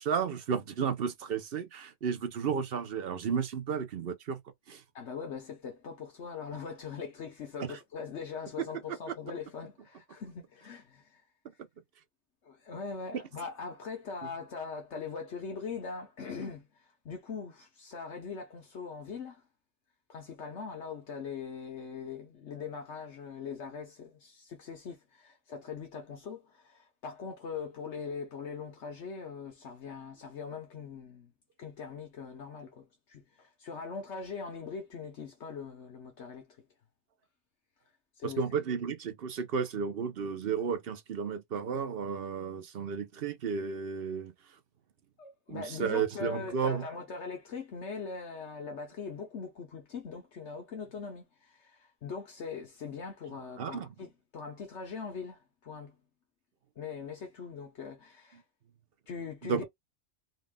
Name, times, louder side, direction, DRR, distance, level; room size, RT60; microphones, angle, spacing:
voice 1, 0.0-4.4 4.7-4.8 7.6-7.7 8.6-9.2 38.2-44.3 45.5-46.8 53.6-53.9 59.4-59.6, right 6 dB, 55° right, 0.9 m, -33 dB
voice 2, 4.9-11.2 12.4-19.4 20.1-31.3 31.6-36.6 38.2-38.4 45.2-56.0 56.8-58.4 59.1-59.6, left 5 dB, 70° left, 1.2 m, -41 dB
3.8 x 2.4 x 3.6 m
omnidirectional pair, 1.2 m